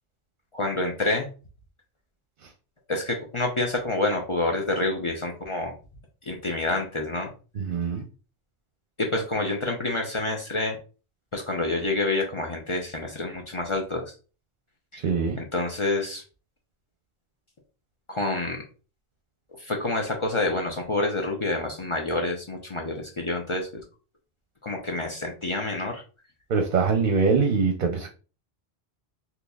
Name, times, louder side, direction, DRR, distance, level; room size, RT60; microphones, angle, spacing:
voice 1, 0.5-1.3 2.9-5.7 6.3-7.3 9.0-10.8 11.3-14.0 15.4-16.2 18.1-18.6 19.6-23.7 24.6-26.0, left 2 dB, 40° left, 1 dB, 0.5 m, -27 dB
voice 2, 7.5-8.0 15.0-15.4 26.5-28.1, right 5 dB, 55° right, 3 dB, 0.7 m, -23 dB
3.9 x 2.9 x 2.3 m, 0.35 s
omnidirectional pair, 1.1 m